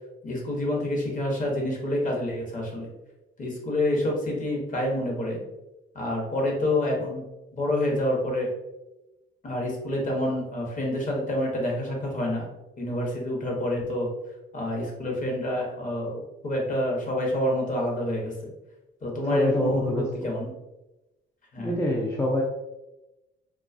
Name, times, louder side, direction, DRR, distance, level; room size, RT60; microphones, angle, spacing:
voice 1, 0.2-2.9 3.4-5.4 5.9-7.2 7.5-8.5 9.4-12.5 12.8-14.1 14.5-18.5 19.0-20.5 21.5-21.8, left 1 dB, 40° left, -1 dB, 0.8 m, -28 dB
voice 2, 19.3-20.1 21.6-22.4, left 1 dB, 15° left, -1 dB, 0.3 m, -25 dB
2.5 x 2.3 x 2.4 m, 0.97 s
cardioid pair, 95°, 21 cm